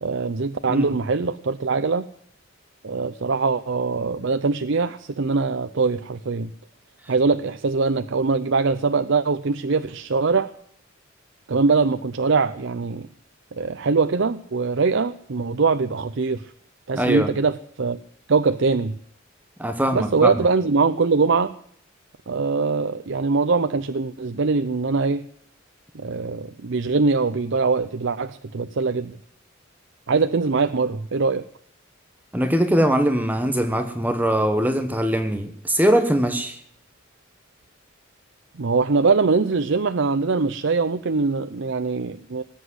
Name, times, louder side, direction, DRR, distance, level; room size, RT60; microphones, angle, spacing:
voice 1, 0.0-2.1 2.8-6.5 7.1-10.5 11.5-13.1 13.6-16.5 16.9-18.0 18.3-19.0 19.9-21.5 22.3-25.3 25.9-29.1 30.1-31.4 38.6-42.4, right 4 dB, 65° right, 11 dB, 0.6 m, -22 dB
voice 2, 16.9-17.3 19.6-20.3 32.3-36.6, right 1 dB, 10° right, 7 dB, 1.1 m, -21 dB
19.5 x 8.2 x 7.9 m, 0.63 s
head